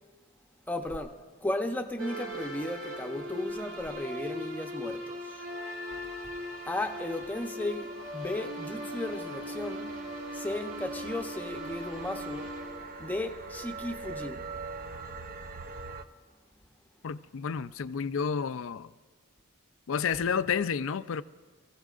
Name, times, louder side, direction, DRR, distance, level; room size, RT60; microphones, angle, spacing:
voice 1, 0.7-5.2 6.2-6.3 6.7-9.9 10.3-12.5 13.0-14.4, left 1 dB, 10° left, 0.7 m, -35 dB
sound 1, 2.0-13.8, equal, 65° right, 2.2 m, -39 dB
sound 2, 5.5-16.0, right 4 dB, 45° right, 0.6 m, -44 dB
voice 2, 17.0-18.9 19.9-21.2, left 6 dB, 65° left, 0.4 m, -30 dB
27.5 x 16.0 x 2.5 m
head